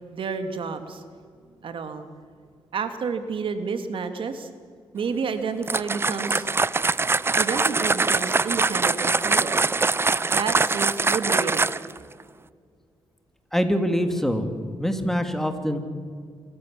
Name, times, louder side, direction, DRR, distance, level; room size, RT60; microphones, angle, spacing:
voice 1, 0.1-1.0 1.6-2.1 2.7-4.5 4.9-6.5 7.3-9.6 10.3-11.8, right 5 dB, 65° right, 9 dB, 1.7 m, -30 dB
sound 1, 5.6-12.0, right 3 dB, 25° right, 0.6 m, -23 dB
voice 2, 13.5-14.5 14.8-15.8, equal, 5° left, 7 dB, 2.4 m, -24 dB
27.0 x 14.5 x 7.2 m, 2.1 s
cardioid pair, 85°, 9 cm